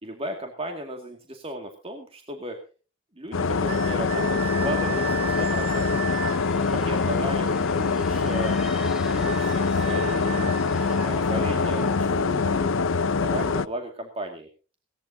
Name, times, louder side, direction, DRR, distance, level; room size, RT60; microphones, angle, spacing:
voice 1, 0.0-2.6 3.2-5.9 6.6-8.6 9.1-12.7 13.0-14.5, right 1 dB, 30° right, 3 dB, 2.1 m, -35 dB
sound 1, 3.3-13.7, left 4 dB, 80° left, 0.6 m, -24 dB
sound 2, 3.7-6.4 8.6-11.1, right 11 dB, 55° right, 2.0 m, -36 dB
sound 3, 4.9-12.0, left 1 dB, 5° right, 2.2 m, -41 dB
19.0 x 17.5 x 2.7 m, 0.36 s
head